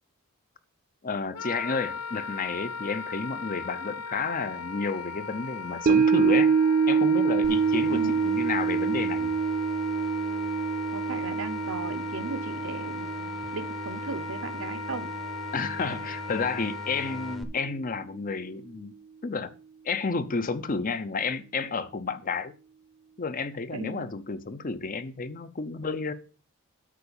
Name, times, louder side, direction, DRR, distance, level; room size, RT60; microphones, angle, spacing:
voice 1, 1.0-6.5 6.9-9.3 15.5-18.9 19.2-19.5 19.8-22.5 23.2-26.1, left 4 dB, 40° left, 0.6 m, -31 dB
Wind instrument woodwind instrument, 1.3-17.4, left 5 dB, 75° left, 0.6 m, -38 dB
sound 1, 5.9-16.2 16.6-16.7, right 6 dB, 40° right, 0.3 m, -26 dB
sound 2, 7.4-17.4, left 1 dB, ahead, 0.7 m, -43 dB
voice 2, 10.9-15.1 23.7-24.2, right 4 dB, 65° right, 0.8 m, -37 dB
8.4 x 4.8 x 7.0 m
head